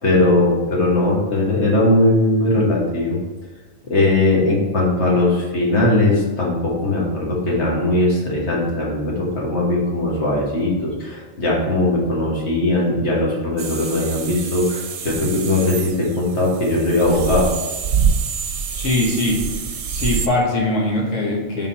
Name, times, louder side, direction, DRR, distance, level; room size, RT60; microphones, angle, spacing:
voice 1, 0.0-3.2 3.8-17.5, left 2 dB, 65° left, -3 dB, 1.7 m, -19 dB
sound 1, 13.6-20.3, right 6 dB, 70° right, 0.9 m, -26 dB
voice 2, 18.7-19.4 19.9-21.7, left 2 dB, 80° left, -2 dB, 1.5 m, -21 dB
4.6 x 3.8 x 5.5 m, 1.2 s
omnidirectional pair, 1.3 m